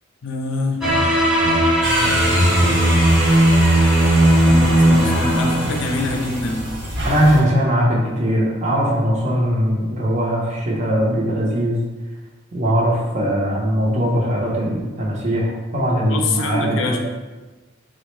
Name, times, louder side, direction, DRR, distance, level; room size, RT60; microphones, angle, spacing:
voice 1, 0.2-0.8 4.5-6.7 16.1-17.0, left 3 dB, 70° left, 2 dB, 0.4 m, -25 dB
sound 1, 0.8-6.6, right 1 dB, 5° right, 0.7 m, -16 dB
sound 2, 1.8-7.4, equal, 60° right, 0.9 m, -25 dB
voice 2, 7.0-11.8 12.5-17.0, equal, 40° right, -3 dB, 0.6 m, -20 dB
3.5 x 2.0 x 3.0 m, 1.2 s
head